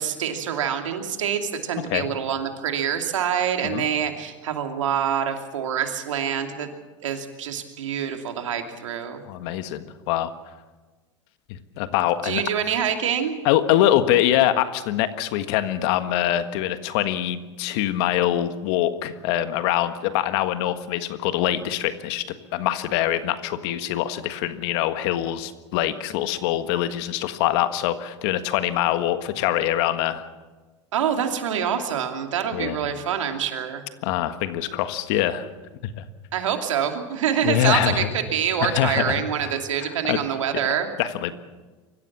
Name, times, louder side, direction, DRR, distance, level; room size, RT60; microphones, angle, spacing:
voice 1, 0.0-6.7 7.0-9.2 12.2-13.4 30.9-33.8 36.3-40.9, right 8 dB, 90° right, 5 dB, 2.7 m, -26 dB
voice 2, 9.3-10.3 11.5-12.4 13.4-30.2 32.5-32.8 34.0-35.5 35.8-36.0 37.4-38.1 38.6-39.5 39.8-40.2 41.0-41.4, left 12 dB, 60° left, 10 dB, 1.6 m, -24 dB
24.5 x 15.0 x 7.4 m, 1.3 s
hypercardioid pair, 115°, 16 cm